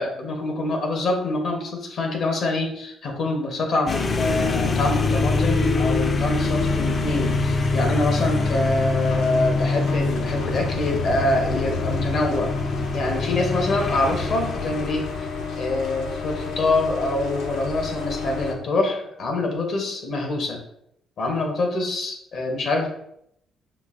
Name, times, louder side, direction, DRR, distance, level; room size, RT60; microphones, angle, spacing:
voice 1, 0.0-12.5 12.9-15.3 15.5-20.6 21.2-22.9, left 2 dB, 65° left, 2 dB, 1.0 m, -25 dB
sound 1, 3.9-15.6, left 3 dB, 40° left, 0.4 m, -24 dB
sound 2, 6.4-18.5, left 4 dB, 90° left, 0.6 m, -32 dB
5.2 x 2.5 x 2.5 m, 0.74 s
cardioid pair, 90°, 0 cm